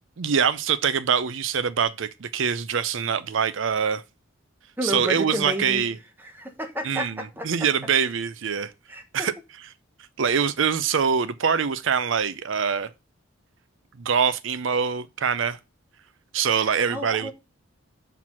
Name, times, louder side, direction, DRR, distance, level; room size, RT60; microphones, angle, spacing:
voice 1, 0.2-4.0 4.8-6.0 6.8-8.7 9.1-9.7 10.2-12.9 14.0-15.6 16.3-17.3, right 7 dB, 70° right, 0.5 m, -24 dB
voice 2, 4.8-5.8 6.2-7.5 8.9-9.3 16.6-17.3, equal, 10° right, 1.1 m, -31 dB
5.9 x 4.6 x 5.9 m
head